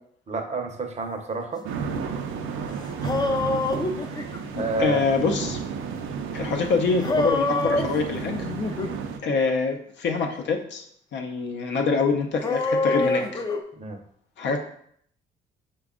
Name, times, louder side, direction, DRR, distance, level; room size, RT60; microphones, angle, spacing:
voice 1, 0.3-1.6 4.6-5.0 13.8-14.0, right 2 dB, 35° right, 4 dB, 0.7 m, -29 dB
sound 1, 1.6-9.2, right 6 dB, 85° right, 0.5 m, -32 dB
sound 2, 2.6-2.7 2.9-4.7 7.0-9.0 9.3-9.5 12.4-13.6, left 2 dB, 20° left, 0.4 m, -26 dB
voice 2, 4.8-5.6 6.3-8.3 9.2-10.8 11.1-13.4 14.4-14.6, left 4 dB, 65° left, 3 dB, 0.6 m, -25 dB
5.0 x 2.3 x 3.6 m, 0.65 s
cardioid pair, 90°, 20 cm